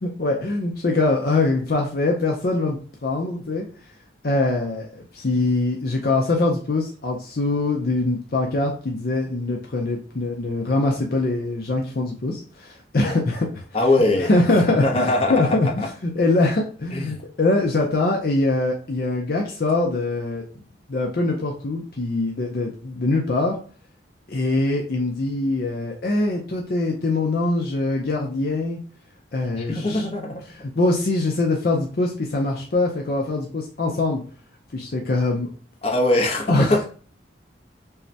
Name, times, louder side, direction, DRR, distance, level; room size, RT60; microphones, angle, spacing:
voice 1, 0.0-3.7 4.2-13.6 14.2-20.4 20.9-23.6 24.3-28.8 29.3-30.1 30.7-34.2 34.7-35.5 36.5-36.7, left 2 dB, 50° left, 0 dB, 0.5 m, -23 dB
voice 2, 13.7-15.9 16.9-17.2 29.5-30.4 35.8-36.8, left 2 dB, 30° left, -1 dB, 0.8 m, -22 dB
5.4 x 2.2 x 2.7 m, 0.40 s
head